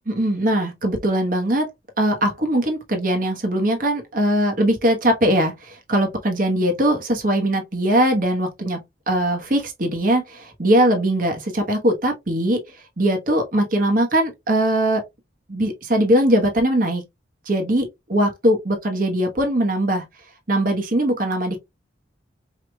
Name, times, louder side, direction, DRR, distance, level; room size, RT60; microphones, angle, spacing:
voice 1, 0.1-1.7 2.0-12.6 13.0-15.0 15.5-17.0 17.5-20.0 20.5-21.6, right 1 dB, 45° right, 1.1 m, -20 dB
4.8 x 3.2 x 2.2 m
head